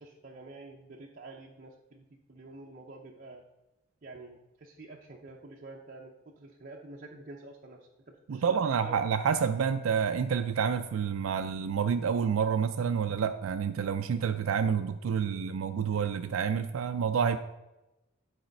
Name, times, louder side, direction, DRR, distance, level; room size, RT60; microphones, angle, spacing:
voice 1, 0.0-3.4 4.0-8.5 8.8-9.0 15.3-15.5, right 2 dB, 40° right, -1 dB, 0.6 m, -48 dB
voice 2, 8.3-17.4, right 7 dB, 85° right, 8 dB, 0.4 m, -28 dB
8.8 x 4.2 x 5.2 m, 0.98 s
head